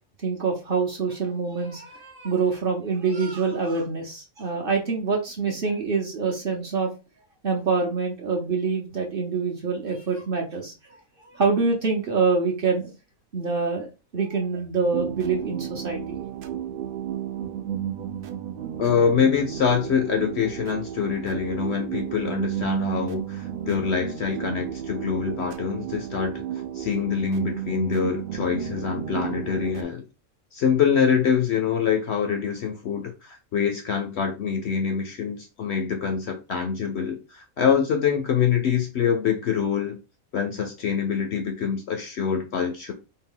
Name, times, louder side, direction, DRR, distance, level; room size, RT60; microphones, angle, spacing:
voice 1, 0.2-6.9 7.4-10.7 11.3-12.9 13.3-13.9 14.1-16.2, right 4 dB, 50° right, 0.8 m, -25 dB
sound 1, 14.9-29.8, right 10 dB, 70° right, 0.5 m, -33 dB
voice 2, 18.8-26.4 26.7-30.0 30.5-40.0 40.3-42.9, left 7 dB, 65° left, 0.7 m, -25 dB
4.2 x 2.2 x 3.6 m
omnidirectional pair, 1.5 m